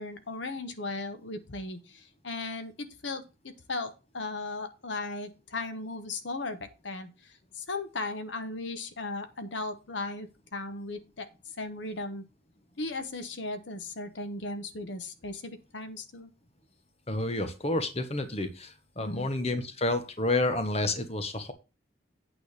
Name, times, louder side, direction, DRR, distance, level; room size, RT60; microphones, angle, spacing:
voice 1, 0.0-11.3 11.6-12.2 12.8-16.3 19.0-19.3, left 2 dB, 70° left, 9 dB, 1.1 m, -37 dB
voice 2, 17.1-21.5, left 2 dB, 30° left, 8 dB, 1.1 m, -30 dB
8.8 x 3.9 x 6.5 m, 0.29 s
head